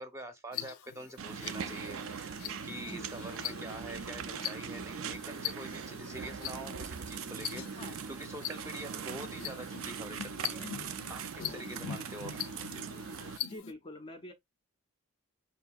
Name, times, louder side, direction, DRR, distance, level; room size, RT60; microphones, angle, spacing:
voice 1, 0.0-12.5, right 1 dB, 15° right, 0.7 m, -46 dB
sound 1, 0.5-13.7, left 9 dB, 70° left, 0.5 m, -43 dB
sound 2, 1.2-13.4, right 6 dB, 65° right, 0.4 m, -41 dB
voice 2, 13.5-14.3, left 1 dB, 25° left, 0.5 m, -46 dB
5.6 x 2.7 x 2.3 m
head